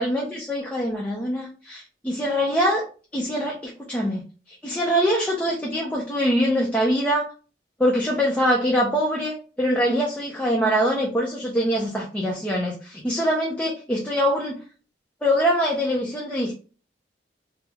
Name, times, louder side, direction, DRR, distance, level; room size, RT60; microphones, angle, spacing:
voice 1, 0.0-2.8 3.1-4.2 4.5-7.3 7.8-14.5 15.2-16.5, equal, 5° left, -2 dB, 0.5 m, -23 dB
3.1 x 2.0 x 3.4 m, 0.36 s
head